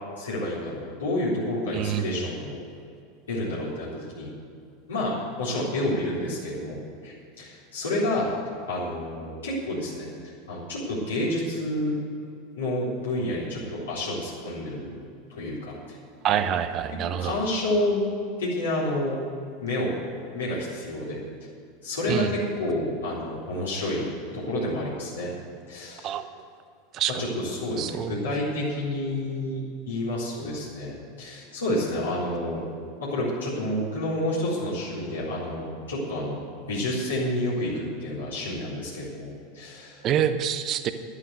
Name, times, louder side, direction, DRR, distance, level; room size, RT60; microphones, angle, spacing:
voice 1, 0.2-2.6 3.3-4.3 4.9-8.3 8.7-10.1 10.5-11.9 12.6-15.0 15.3-16.0 16.3-16.4 17.2-18.0 18.4-19.2 19.6-19.9 20.3-21.2 21.8-25.3 25.7-26.1 27.2-29.6 29.9-32.6 33.0-36.4 36.7-40.0, left 1 dB, 75° left, -8 dB, 3.9 m, -29 dB
voice 2, 1.7-2.1 16.2-17.4 22.1-22.3 26.0-26.3 26.9-27.2 27.8-28.2 40.0-40.9, right 10 dB, 40° right, 10 dB, 0.9 m, -26 dB
11.5 x 9.9 x 8.1 m, 2.4 s
figure-of-eight pair, 85°, 0 cm